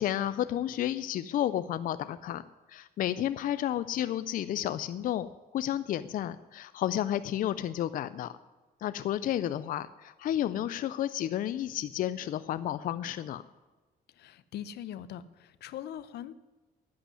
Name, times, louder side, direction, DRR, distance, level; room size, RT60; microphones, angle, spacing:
voice 1, 0.0-2.4 2.7-5.3 5.5-8.3 8.8-13.4, left 11 dB, 60° left, 13 dB, 0.5 m, -31 dB
voice 2, 14.2-16.3, left 10 dB, 90° left, 16 dB, 0.7 m, -41 dB
11.0 x 8.8 x 9.7 m, 1.2 s
cardioid pair, 170°, 16 cm